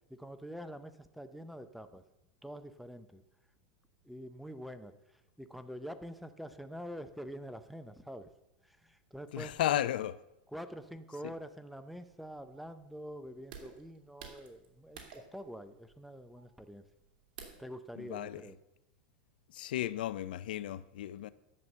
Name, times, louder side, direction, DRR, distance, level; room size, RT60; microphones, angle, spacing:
voice 1, 0.1-2.0 2.4-3.2 4.0-8.3 8.6-9.7 10.5-16.8 17.6-18.6, equal, ahead, 0.6 m, -46 dB
voice 2, 9.3-10.1 18.0-18.4 19.5-21.3, left 13 dB, 85° left, 0.5 m, -34 dB
sound 1, 11.8-17.8, right 6 dB, 75° right, 2.6 m, -53 dB
11.0 x 7.0 x 7.5 m
supercardioid pair, 160°, 5 cm